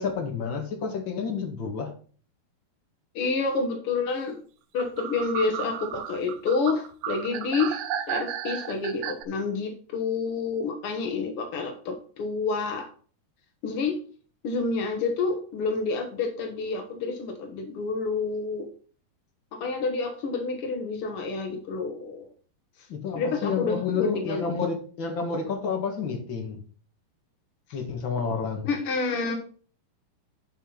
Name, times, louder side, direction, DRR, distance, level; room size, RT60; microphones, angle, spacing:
voice 1, 0.0-1.9 22.9-26.6 27.7-28.7, left 5 dB, 45° left, 2 dB, 1.8 m, -30 dB
voice 2, 3.1-4.4 4.7-7.8 8.1-12.9 13.6-14.0 14.4-18.7 19.5-22.3 23.1-24.7 28.6-29.4, left 4 dB, 85° left, 4 dB, 1.2 m, -29 dB
sound 1, 4.8-9.2, right 10 dB, 85° right, 2.6 m, -33 dB
11.0 x 5.6 x 3.9 m, 0.42 s
omnidirectional pair, 4.4 m